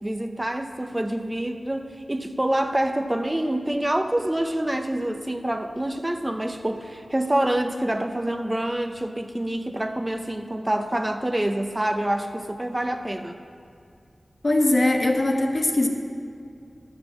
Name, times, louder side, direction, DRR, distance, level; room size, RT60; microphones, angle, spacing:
voice 1, 0.0-13.4, right 1 dB, 20° right, 6 dB, 0.6 m, -26 dB
voice 2, 14.4-15.9, left 1 dB, 45° left, 2 dB, 1.4 m, -21 dB
11.5 x 7.4 x 7.5 m, 2.4 s
wide cardioid pair, 90°, 0 cm